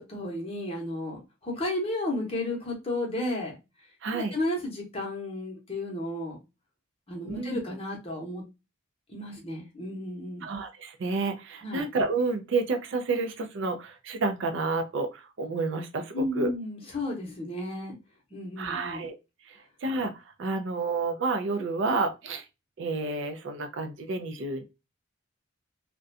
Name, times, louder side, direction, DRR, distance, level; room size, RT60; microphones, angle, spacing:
voice 1, 0.0-3.5 4.1-6.4 7.1-8.4 9.1-10.5 11.6-11.8 16.1-17.9 18.3-19.0, left 1 dB, 30° left, 0.8 m, -33 dB
voice 2, 4.0-4.3 7.3-7.6 10.4-16.5 18.6-19.2 19.5-20.1 20.4-22.5 22.8-24.6, right 3 dB, 60° right, 0.4 m, -30 dB
2.4 x 2.1 x 2.5 m
head